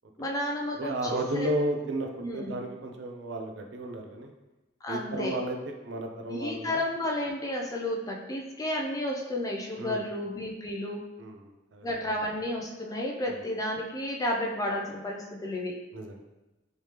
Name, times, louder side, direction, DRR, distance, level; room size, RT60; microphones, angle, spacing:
voice 1, 0.2-1.1 1.3-1.5 2.2-2.6 4.8-5.4 6.3-11.0 11.8-15.8, left 1 dB, 20° left, 0 dB, 0.4 m, -32 dB
voice 2, 0.8-4.3 4.9-6.8 9.8-10.0 11.2-12.0 15.9-16.2, right 1 dB, 65° right, 3 dB, 0.4 m, -33 dB
3.3 x 3.2 x 2.9 m, 1.1 s
head